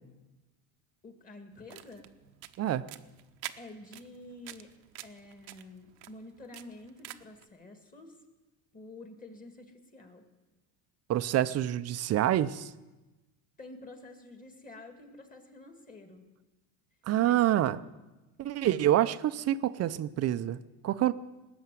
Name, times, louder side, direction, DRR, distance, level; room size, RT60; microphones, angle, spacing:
voice 1, 1.0-2.1 3.6-4.7 5.0-8.2 8.7-10.2 13.6-16.2 17.2-17.4, left 2 dB, 20° left, 5 dB, 2.2 m, -49 dB
sound 1, 1.5-7.5, right 15 dB, 60° right, 0.9 m, -48 dB
voice 2, 11.1-12.7 17.1-17.8 18.4-20.6 20.8-21.1, right 12 dB, 35° right, 13 dB, 0.6 m, -27 dB
19.5 x 7.2 x 9.3 m, 1.1 s
supercardioid pair, 125°, 44 cm